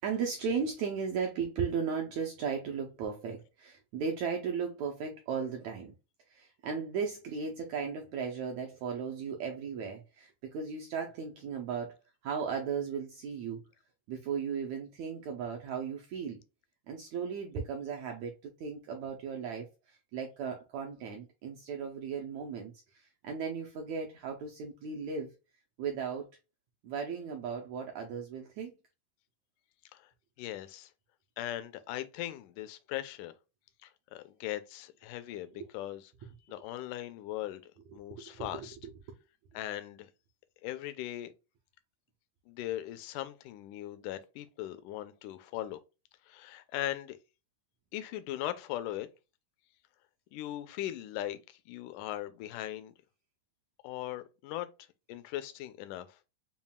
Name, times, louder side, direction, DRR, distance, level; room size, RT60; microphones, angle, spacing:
voice 1, 0.0-5.9 6.3-12.0 12.2-13.6 14.1-16.4 16.9-25.3 25.8-26.3 26.8-28.7 35.6-35.7 37.9-39.2, right 6 dB, 75° right, 1.6 m, -36 dB
voice 2, 30.4-30.9 31.4-33.3 33.8-36.0 36.5-38.8 39.5-40.1 40.6-41.3 42.5-45.8 46.3-47.2 47.9-49.1 50.3-52.9 53.8-54.7 55.1-56.1, left 13 dB, 80° left, 1.9 m, -39 dB
7.1 x 2.4 x 2.2 m
omnidirectional pair, 4.0 m